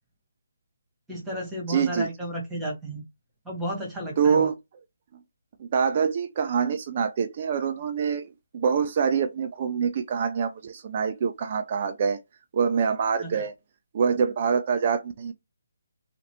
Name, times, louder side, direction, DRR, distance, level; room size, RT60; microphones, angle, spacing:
voice 1, 1.1-3.0 3.4-4.5 13.2-13.4, right 1 dB, 5° right, 1.4 m, -33 dB
voice 2, 1.7-2.1 4.2-4.5 5.7-8.3 8.5-12.2 12.5-13.5 13.9-15.3, right 6 dB, 40° right, 0.4 m, -25 dB
3.1 x 2.4 x 2.9 m
figure-of-eight pair, 145°, 0 cm